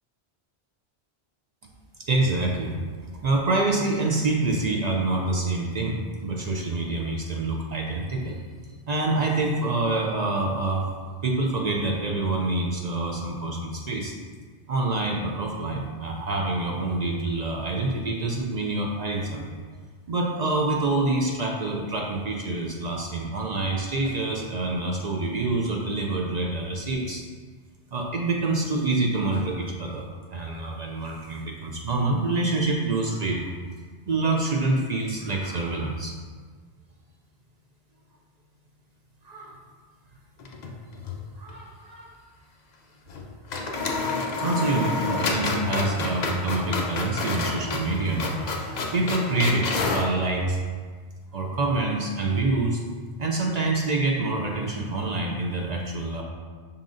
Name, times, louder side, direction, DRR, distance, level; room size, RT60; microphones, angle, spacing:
voice 1, 2.1-2.7 3.2-8.4 8.9-10.9 11.2-14.1 14.7-19.4 20.1-27.2 27.9-33.5 34.1-36.1 39.2-39.6 41.4-42.1 43.6-48.5 48.9-50.6 51.3-52.8 53.2-56.2, right 2 dB, 55° right, 0 dB, 0.5 m, -26 dB
sound 1, 40.4-41.2 41.5-41.6 43.1-43.2 43.5-50.1, left 3 dB, 50° left, 0.6 m, -29 dB
5.4 x 3.8 x 2.5 m, 1.5 s
omnidirectional pair, 1.1 m